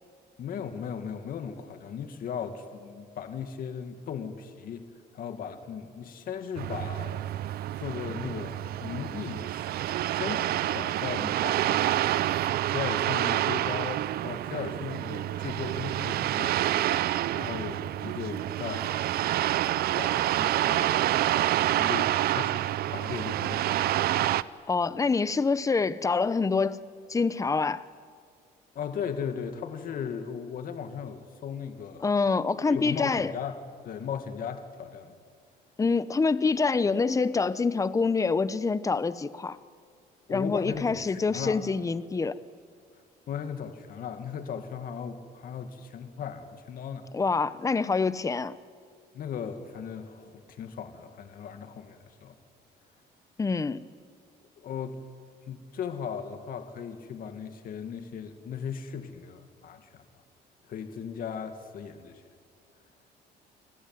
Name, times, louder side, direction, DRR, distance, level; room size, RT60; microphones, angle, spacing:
voice 1, 0.4-7.3 7.8-9.7 10.1-12.1 12.6-16.8 17.3-19.1 20.0-21.0 21.8-24.0 28.8-32.1 32.7-33.6 33.8-35.1 40.3-41.6 43.3-47.1 49.1-52.4 54.6-55.0 55.5-60.0 60.7-62.2, left 7 dB, 55° left, 7 dB, 2.2 m, -37 dB
sound 1, 6.6-24.4, right 13 dB, 65° right, 0.7 m, -28 dB
voice 2, 24.7-26.8 27.1-27.9 32.0-33.3 35.8-39.6 40.3-42.4 47.1-48.6 53.4-53.9, left 4 dB, 20° left, 15 dB, 0.9 m, -26 dB
29.0 x 20.0 x 9.6 m, 2.1 s
cardioid pair, 110°, 17 cm